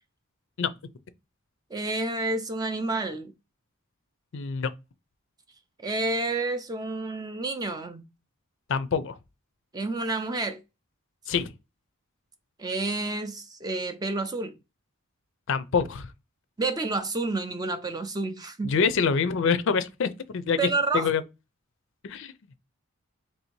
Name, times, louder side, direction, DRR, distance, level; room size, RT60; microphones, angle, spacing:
voice 1, 1.7-3.3 5.8-8.0 9.7-10.6 12.6-14.5 16.6-18.7 20.6-21.1, right 3 dB, 15° right, 0.4 m, -29 dB
voice 2, 4.3-4.7 8.7-9.1 11.3-11.5 15.5-16.1 18.6-20.6 20.9-21.2 22.0-22.3, left 5 dB, 55° left, 0.4 m, -25 dB
3.3 x 2.7 x 4.4 m
head